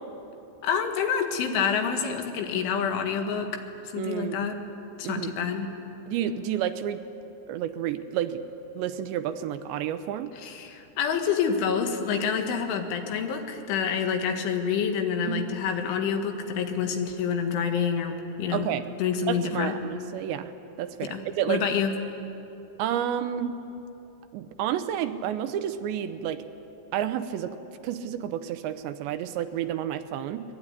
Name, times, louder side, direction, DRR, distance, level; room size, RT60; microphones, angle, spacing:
voice 1, 0.6-3.6 3.9-4.6 5.0-5.7 10.3-18.7 19.0-19.8 21.1-21.9, left 7 dB, 80° left, 5 dB, 4.2 m, -27 dB
voice 2, 4.0-4.4 5.0-5.3 6.1-7.0 7.5-8.4 8.7-10.3 15.3-15.4 18.5-18.9 19.3-20.5 20.8-21.6 22.8-23.6 24.3-26.4 26.9-27.6 27.8-30.4, right 10 dB, 75° right, 10 dB, 2.9 m, -30 dB
24.0 x 21.5 x 9.8 m, 3.0 s
omnidirectional pair, 5.4 m